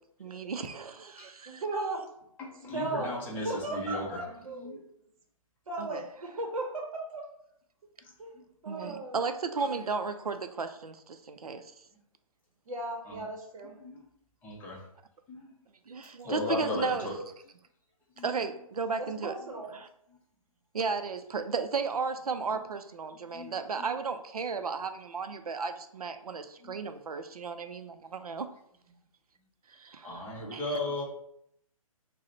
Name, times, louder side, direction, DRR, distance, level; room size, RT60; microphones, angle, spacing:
voice 1, 0.2-1.6 5.8-6.0 8.7-11.7 15.9-17.1 18.2-19.3 19.7-19.9 20.7-28.5 29.7-30.2 30.5-30.7, right 5 dB, 90° right, 9 dB, 0.4 m, -34 dB
voice 2, 1.5-2.0 2.7-4.8 5.7-7.2 8.2-8.3 8.6-9.8 12.7-13.7 19.0-19.7, right 2 dB, 65° right, 2 dB, 0.8 m, -36 dB
voice 3, 2.4-4.2 4.6-4.8 8.0-8.4 13.1-13.2 13.8-14.0 14.4-14.8 15.3-15.5 16.2-17.2 18.2-18.3 22.5-22.6 23.3-23.9 26.6-26.7 30.0-31.0, left 2 dB, 10° left, -2 dB, 0.5 m, -36 dB
4.7 x 2.1 x 2.8 m, 0.73 s
figure-of-eight pair, 135°, 18 cm